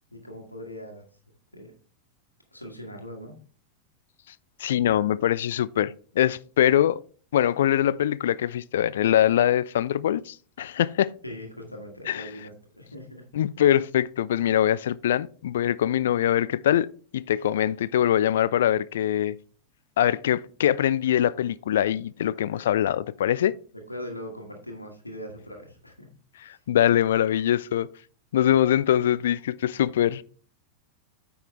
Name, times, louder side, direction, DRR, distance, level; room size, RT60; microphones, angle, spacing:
voice 1, 0.1-1.1 1.5-1.7 2.5-3.3 4.8-4.9 11.2-13.2 23.9-26.1 26.4-26.6, equal, 85° left, 1.6 m, -40 dB
voice 2, 4.6-7.0 7.3-11.1 12.1-12.3 13.3-16.9 17.1-19.4 20.0-23.5 26.4-27.9 28.3-30.2, left 11 dB, 60° left, 0.3 m, -23 dB
9.0 x 5.5 x 3.4 m
figure-of-eight pair, 90°, 0 cm